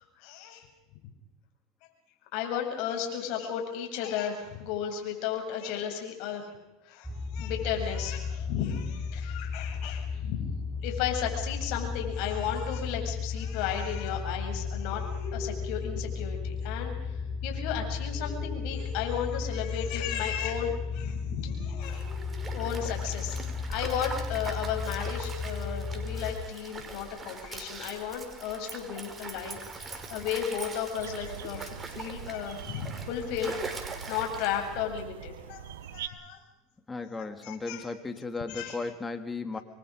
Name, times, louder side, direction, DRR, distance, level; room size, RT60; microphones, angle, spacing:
voice 1, 0.2-0.7 2.3-6.5 6.9-22.0 22.5-35.6 35.9-36.4 37.2-37.8 38.5-38.8, left 8 dB, 65° left, 3 dB, 7.9 m, -34 dB
sound 1, 7.0-26.3, left 5 dB, ahead, 6.2 m, -34 dB
Stream, 21.8-34.9, right 4 dB, 20° right, 5.4 m, -42 dB
sound 2, 31.0-36.1, right 9 dB, 85° right, 1.6 m, -43 dB
voice 2, 36.9-39.6, left 3 dB, 15° left, 7 dB, 3.1 m, -35 dB
29.5 x 24.0 x 5.3 m, 1.0 s
hypercardioid pair, 100°, 0 cm